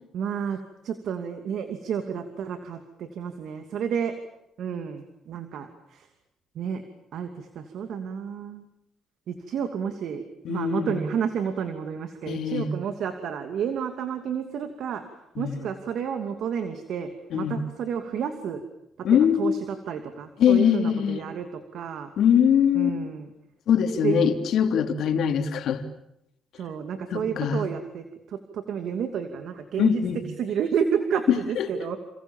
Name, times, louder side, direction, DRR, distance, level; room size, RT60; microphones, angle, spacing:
voice 1, 0.1-0.6 0.8-4.1 4.6-6.1 6.5-6.8 7.1-8.7 9.3-10.2 10.5-15.0 15.4-18.6 19.0-22.1 22.7-23.3 24.0-24.3 26.6-30.0 30.4-32.0, right 7 dB, 70° right, 7 dB, 2.7 m, -30 dB
voice 2, 10.4-11.0 12.3-12.7 15.4-15.6 17.3-17.6 19.0-19.6 20.4-21.2 22.2-23.0 23.7-25.8 27.1-27.6 29.8-30.2 31.3-31.7, left 8 dB, 75° left, 6 dB, 3.2 m, -22 dB
29.5 x 27.5 x 7.3 m, 0.80 s
cardioid pair, 90°, 0 cm